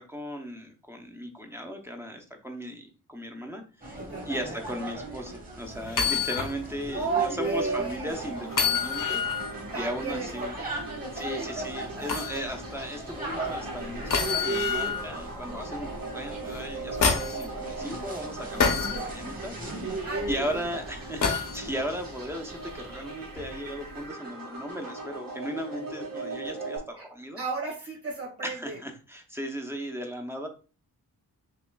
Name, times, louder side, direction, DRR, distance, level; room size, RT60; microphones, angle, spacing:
voice 1, 0.0-4.0 4.3-10.5 11.1-19.5 19.8-27.4 28.4-30.5, equal, 5° right, 3 dB, 0.6 m, -37 dB
sound 1, 3.8-23.1, right 2 dB, 25° right, 1.3 m, -38 dB
voice 2, 4.0-4.9 6.9-8.2 9.7-10.7 11.2-12.1 20.0-20.4 20.7-20.8 27.0-27.1 27.4-28.8, right 4 dB, 40° right, -1 dB, 1.8 m, -34 dB
sound 2, 5.9-6.5 7.0-7.1 8.5-9.5 12.1-12.4 14.1-15.0 16.5-17.4 18.6-19.0 21.2-21.6 23.4-23.5, left 6 dB, 65° left, 0.7 m, -26 dB
sound 3, 8.1-26.8, right 3 dB, 70° right, 1.5 m, -40 dB
5.7 x 3.0 x 2.2 m, 0.34 s
wide cardioid pair, 170°, 35 cm